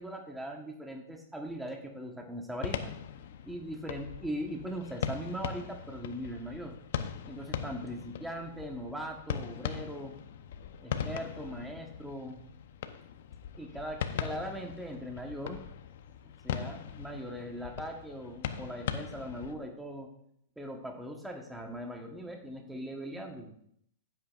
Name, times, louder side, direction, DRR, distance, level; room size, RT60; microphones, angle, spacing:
voice 1, 0.0-2.9 3.4-6.8 7.3-10.1 10.8-12.4 13.6-15.6 16.4-20.1 20.6-23.6, equal, 5° right, 2 dB, 1.2 m, -40 dB
sound 1, 2.6-19.5, left 8 dB, 65° left, 0.8 m, -40 dB
15.5 x 8.0 x 2.5 m, 0.69 s
hypercardioid pair, 140°, 0 cm